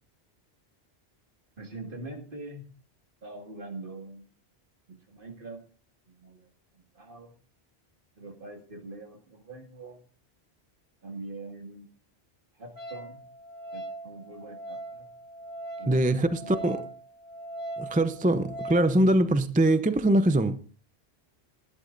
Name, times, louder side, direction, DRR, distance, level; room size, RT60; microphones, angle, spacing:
voice 1, 1.6-2.7 3.2-4.3 5.1-5.6 6.1-6.5 6.7-7.3 8.2-10.0 11.0-11.9 12.5-13.2 13.7-15.1 15.8-16.9, right 2 dB, 55° right, 2.2 m, -43 dB
Wind instrument woodwind instrument, 12.8-18.9, right 1 dB, 40° left, 2.2 m, -40 dB
voice 2, 15.9-16.8 17.8-20.6, right 1 dB, 10° right, 0.5 m, -23 dB
19.0 x 11.5 x 2.6 m
omnidirectional pair, 1.1 m